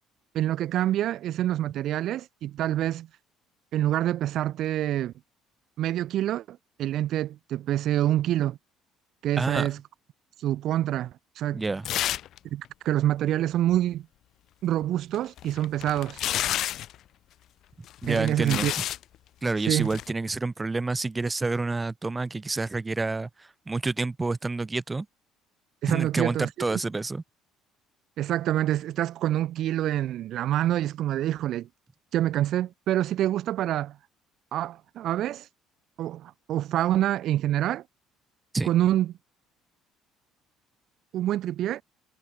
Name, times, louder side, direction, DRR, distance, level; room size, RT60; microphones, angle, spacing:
voice 1, 0.3-3.1 3.7-5.1 5.8-8.6 9.2-9.8 10.4-11.6 12.5-14.1 14.6-16.2 18.1-18.7 19.7-19.9 25.8-26.8 28.2-31.7 32.1-34.0 34.5-35.5 36.0-37.8 38.6-39.1 41.1-41.8, right 13 dB, 60° right, 0.5 m, -26 dB
voice 2, 9.4-9.7 11.5-11.9 18.0-18.7 19.4-25.1 25.9-27.2 38.5-38.7, right 3 dB, 15° right, 0.6 m, -28 dB
sound 1, 11.8-12.4 12.6-12.7 15.1-16.9 17.9-19.0 19.8-20.1, left 12 dB, 55° left, 0.5 m, -30 dB
cardioid pair, 130°, 0 cm